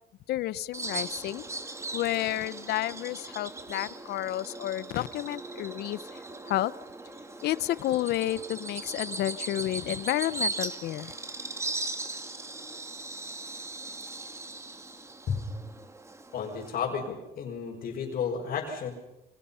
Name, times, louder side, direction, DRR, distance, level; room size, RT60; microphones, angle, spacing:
voice 1, 0.3-1.4 1.9-6.2 6.5-6.7 7.4-11.1, left 14 dB, 75° left, 18 dB, 0.9 m, -31 dB
Bird vocalization bird call bird song, 0.7-16.8, right 2 dB, 15° right, 2.0 m, -38 dB
voice 2, 16.3-18.9, left 6 dB, 60° left, -3 dB, 5.4 m, -32 dB
29.0 x 24.5 x 5.7 m, 0.91 s
cardioid pair, 110°, 17 cm